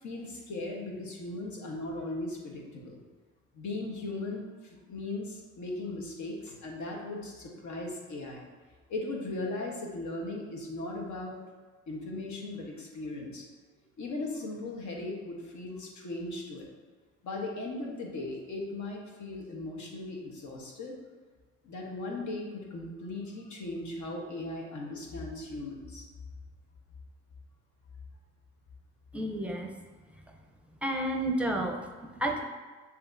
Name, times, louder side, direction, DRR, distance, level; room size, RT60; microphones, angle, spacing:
voice 1, 0.0-3.0 3.5-8.4 8.9-11.3 11.9-13.4 14.0-16.7 17.2-21.0 21.6-26.1, left 2 dB, 70° left, -1 dB, 1.1 m, -38 dB
voice 2, 29.1-29.7 30.8-32.4, right 1 dB, 5° right, 3 dB, 0.6 m, -31 dB
6.9 x 2.8 x 2.6 m, 1.4 s
cardioid pair, 90°, 30 cm